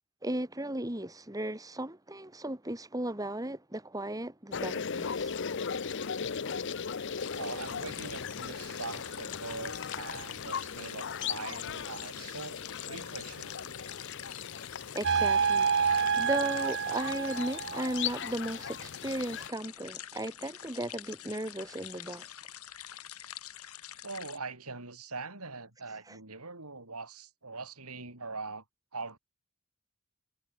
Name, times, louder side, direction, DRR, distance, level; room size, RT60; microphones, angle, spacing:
voice 1, 0.2-5.3 14.9-22.3 26.1-26.2, right 1 dB, 15° right, 2.3 m, -36 dB
sound 1, 4.5-19.5, left 6 dB, 55° left, 0.7 m, -38 dB
sound 2, 7.2-24.4, left 11 dB, 80° left, 4.1 m, -46 dB
voice 2, 7.3-12.6 12.8-13.6 24.0-28.6 28.9-29.2, right 3 dB, 85° right, 6.7 m, -42 dB
sound 3, 15.0-18.2, right 6 dB, 50° right, 0.8 m, -28 dB
head